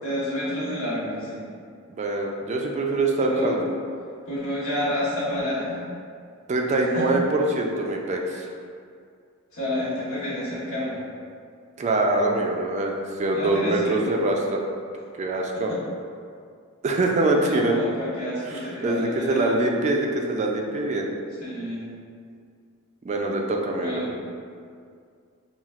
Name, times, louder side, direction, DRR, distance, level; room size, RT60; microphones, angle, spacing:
voice 1, 0.0-1.4 3.2-3.6 4.3-5.8 6.9-7.1 9.5-11.0 13.3-14.1 15.5-15.8 17.4-19.6 21.4-21.8 23.7-24.1, left 1 dB, 85° left, -9 dB, 1.3 m, -29 dB
voice 2, 1.9-3.6 6.5-8.5 11.8-14.6 15.2-15.7 16.8-17.8 18.5-21.1 23.0-24.0, right 2 dB, 35° right, 1 dB, 0.3 m, -24 dB
5.6 x 2.0 x 2.4 m, 2.2 s
head